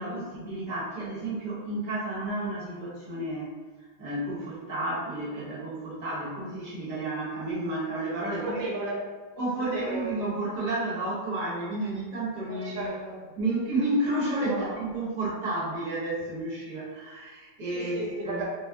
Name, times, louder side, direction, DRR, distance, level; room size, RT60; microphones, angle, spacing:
voice 1, 0.0-3.5 3.8-8.6 9.4-12.9 13.4-18.4, right 2 dB, 50° right, -7 dB, 1.2 m, -31 dB
voice 2, 8.2-9.0 9.4-9.5 9.7-10.1 12.5-13.3 14.5-14.8 17.7-18.5, right 2 dB, 75° right, -3 dB, 1.5 m, -34 dB
3.5 x 2.0 x 3.4 m, 1.4 s
omnidirectional pair, 2.1 m